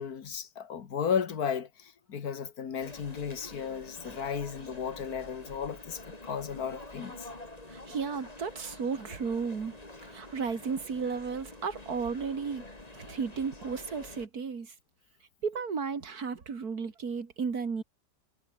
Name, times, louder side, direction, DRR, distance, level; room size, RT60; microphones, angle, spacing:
voice 1, 0.0-7.3, left 7 dB, 60° left, 2.1 m, -34 dB
sound 1, 2.8-14.3, left 2 dB, 20° left, 3.5 m, -47 dB
voice 2, 7.7-9.7 10.1-12.6 12.9-14.7 15.4-17.8, right 5 dB, 60° right, 2.8 m, -34 dB
omnidirectional pair, 1.8 m